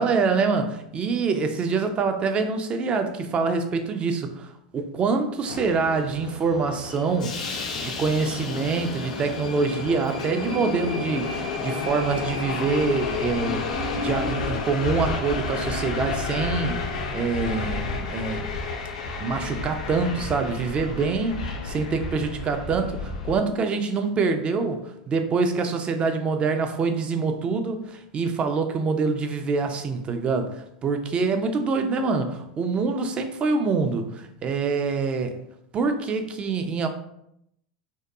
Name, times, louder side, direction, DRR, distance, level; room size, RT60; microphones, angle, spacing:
voice 1, 0.0-4.5 4.7-7.4 7.7-13.7 14.0-18.5 19.2-35.4 35.7-36.9, right 4 dB, 30° right, 6 dB, 0.4 m, -25 dB
Subway metro underground, 5.5-23.4, left 4 dB, 85° left, 0.4 m, -31 dB
2.6 x 2.2 x 2.3 m, 0.77 s
hypercardioid pair, 95°, 3 cm